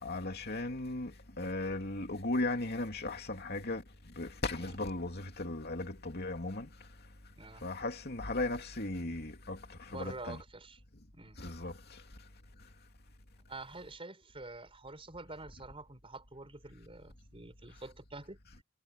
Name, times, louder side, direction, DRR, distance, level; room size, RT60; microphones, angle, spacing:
voice 1, 0.0-6.9 7.6-10.4 11.4-12.0, left 2 dB, 50° left, 2.8 m, -37 dB
voice 2, 9.9-10.8 11.1-11.4 13.5-18.4, right 2 dB, 25° right, 4.7 m, -47 dB
head